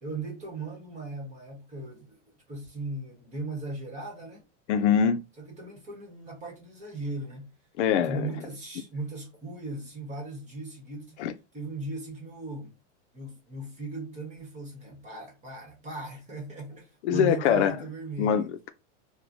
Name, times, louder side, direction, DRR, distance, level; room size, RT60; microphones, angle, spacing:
voice 1, 0.0-2.2 2.5-4.4 5.4-7.5 8.0-11.3 11.5-12.7 13.1-18.5, right 2 dB, 20° right, 1.1 m, -38 dB
voice 2, 4.7-5.2 7.8-8.3 11.2-11.3 17.0-17.8 18.2-18.7, left 8 dB, 70° left, 0.5 m, -23 dB
3.1 x 2.1 x 2.6 m
supercardioid pair, 145°, 37 cm